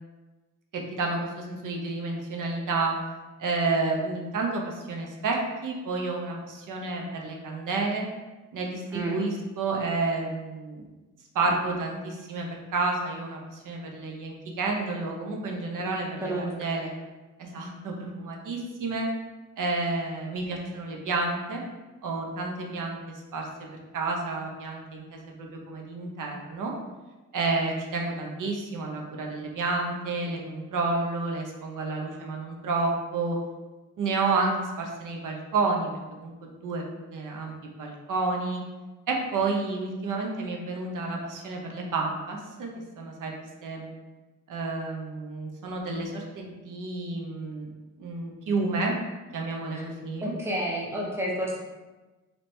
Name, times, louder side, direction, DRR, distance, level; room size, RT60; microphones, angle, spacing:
voice 1, 0.7-2.9 3.4-8.0 8.5-10.8 11.3-16.9 17.4-19.1 19.6-21.6 22.0-23.0 23.3-23.5 23.9-26.7 27.3-33.4 34.0-36.8 37.1-37.5 37.8-38.6 39.1-43.3 43.6-43.9 44.5-47.7 48.0-48.9 49.3-50.3, right 3 dB, 80° right, 0 dB, 0.8 m, -30 dB
voice 2, 50.2-51.6, right 1 dB, 10° right, -3 dB, 0.7 m, -30 dB
3.2 x 2.9 x 4.3 m, 1.2 s
wide cardioid pair, 145°, 31 cm